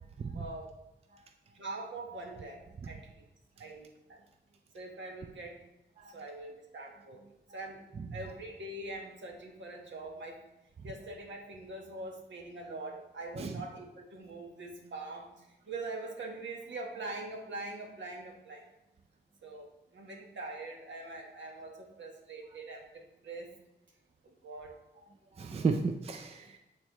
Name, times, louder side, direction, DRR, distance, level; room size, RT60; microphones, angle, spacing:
voice 1, 0.3-0.7 1.5-3.2 3.6-4.2 4.7-5.6 6.1-7.2 7.5-7.8 8.1-10.4 10.8-18.7 19.4-19.7 19.9-22.9 23.2-23.5 24.2-24.7, right 2 dB, 75° right, 1 dB, 1.2 m, -43 dB
voice 2, 25.3-26.6, right 4 dB, 30° right, 5 dB, 0.4 m, -33 dB
8.6 x 4.3 x 3.0 m, 0.95 s
wide cardioid pair, 175°, 19 cm